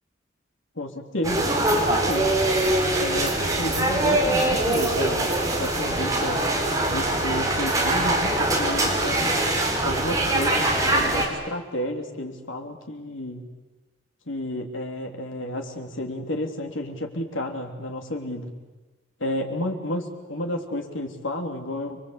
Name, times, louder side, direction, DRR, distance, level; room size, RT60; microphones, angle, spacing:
voice 1, 0.8-2.4 3.0-6.5 6.9-9.3 9.8-13.5 14.3-18.5 19.2-22.0, left 1 dB, 85° left, 3 dB, 3.5 m, -31 dB
sound 1, 1.2-11.2, right 1 dB, 15° right, 4.7 m, -23 dB
30.0 x 23.0 x 8.4 m, 1.2 s
head